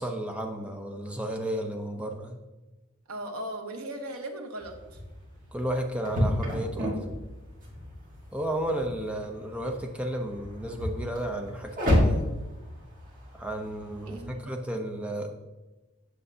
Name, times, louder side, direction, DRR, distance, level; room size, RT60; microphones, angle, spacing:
voice 1, 0.0-2.4 5.5-6.9 8.3-12.3 13.3-15.4, right 1 dB, 5° right, 3 dB, 0.6 m, -33 dB
voice 2, 3.1-5.0 14.0-14.5, right 1 dB, 80° right, 4 dB, 1.0 m, -38 dB
sound 1, 4.6-14.3, left 1 dB, 40° right, 1.6 m, -31 dB
7.9 x 6.4 x 2.8 m, 1.1 s
head